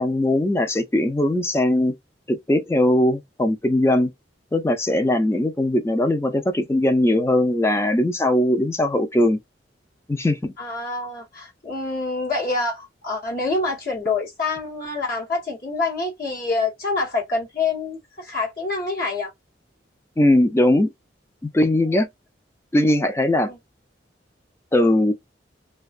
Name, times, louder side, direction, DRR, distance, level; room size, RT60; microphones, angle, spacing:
voice 1, 0.0-1.9 2.3-4.1 4.5-9.4 10.1-10.5 20.2-20.9 21.5-22.1 22.7-23.5 24.7-25.1, left 1 dB, 15° left, 0.4 m, -20 dB
voice 2, 10.6-19.3 23.5-23.6, left 3 dB, 55° left, 1.0 m, -26 dB
2.5 x 2.2 x 2.3 m
head